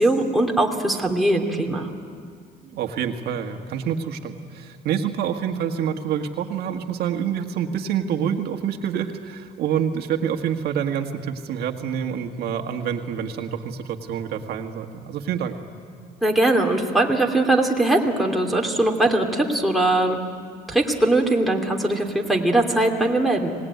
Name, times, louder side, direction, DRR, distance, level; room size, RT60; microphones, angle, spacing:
voice 1, 0.0-1.9 16.2-20.2 20.7-23.5, right 2 dB, ahead, 0 dB, 2.8 m, -21 dB
voice 2, 2.6-15.6, right 8 dB, 70° right, 4 dB, 1.7 m, -27 dB
25.5 x 19.5 x 9.4 m, 2.2 s
cardioid pair, 110°, 17 cm